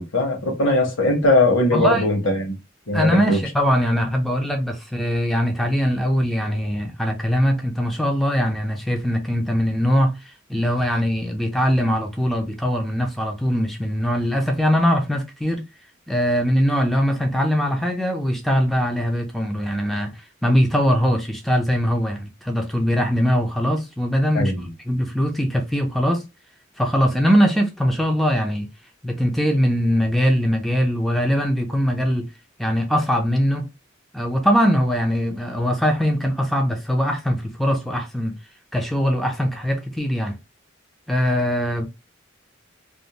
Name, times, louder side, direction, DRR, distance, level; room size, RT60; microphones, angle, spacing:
voice 1, 0.0-2.5 2.9-3.4 24.3-24.7, left 2 dB, 70° left, 1.0 m, -20 dB
voice 2, 1.7-2.0 2.9-10.2 10.5-15.6 16.1-24.5 24.9-26.3 26.8-28.7 29.0-32.3 32.6-33.7 34.1-38.3 38.7-40.4 41.1-41.9, equal, ahead, 0.4 m, -21 dB
2.5 x 2.0 x 2.9 m
head